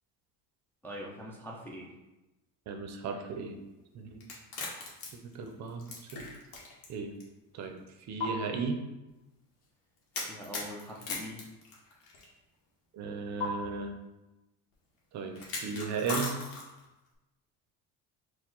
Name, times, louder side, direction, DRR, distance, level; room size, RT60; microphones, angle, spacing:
voice 1, 0.8-1.9 10.2-11.4, equal, 5° left, -3 dB, 0.4 m, -43 dB
voice 2, 2.7-3.6 3.9-4.2 5.3-5.8 6.1-6.2 6.9-7.1 7.5-7.7 8.1-8.8 12.9-13.9 15.1-16.3, right 5 dB, 45° right, 4 dB, 0.6 m, -35 dB
sound 1, 4.2-6.9 7.2-7.3 8.2-8.3 10.1-12.3 13.4-13.5 15.3-16.8, left 4 dB, 65° left, 1.2 m, -37 dB
4.6 x 2.2 x 3.8 m, 1.0 s
cardioid pair, 125°, 38 cm